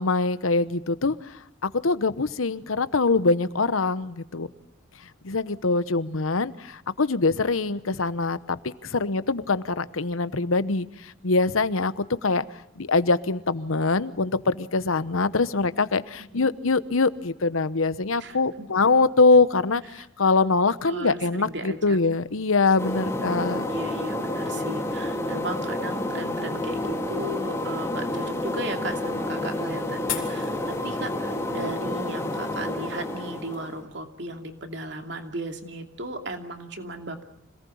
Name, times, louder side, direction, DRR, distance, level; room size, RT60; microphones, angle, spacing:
voice 1, 0.0-4.5 5.2-12.4 12.8-23.7, left 3 dB, 90° left, 15 dB, 1.0 m, -23 dB
voice 2, 18.2-18.7 19.9-20.0 20.9-22.0 23.0-37.2, right 1 dB, 60° right, 5 dB, 2.7 m, -36 dB
sound 1, 22.8-33.8, left 1 dB, 15° left, 3.0 m, -29 dB
sound 2, 25.2-33.6, left 11 dB, 70° left, 4.8 m, -44 dB
26.5 x 19.0 x 8.6 m, 0.81 s
head